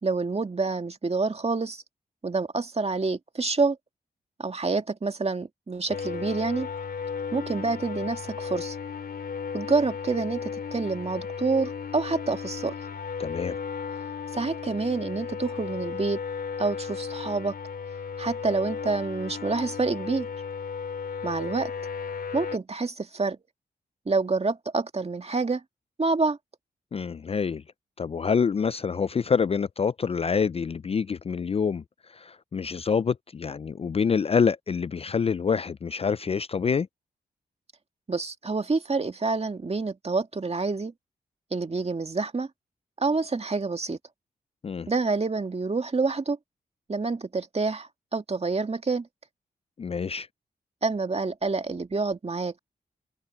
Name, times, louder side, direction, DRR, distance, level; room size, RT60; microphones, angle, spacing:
voice 1, 0.0-1.8 2.2-3.8 4.4-6.7 7.3-8.8 9.5-12.7 14.3-16.2 16.6-17.6 18.2-20.3 21.2-21.7 22.3-23.4 24.1-25.6 26.0-26.4 38.1-40.9 41.5-42.5 43.0-44.0 44.9-46.4 46.9-49.1 50.8-52.6, right 3 dB, 35° right, 2.1 m, -27 dB
sound 1, 5.9-22.6, left 6 dB, 65° left, 2.6 m, -35 dB
voice 2, 13.2-13.6 26.9-27.6 28.0-31.8 32.1-36.9 44.6-44.9 49.8-50.3, left 6 dB, 35° left, 0.4 m, -26 dB
cardioid pair, 50°, 17 cm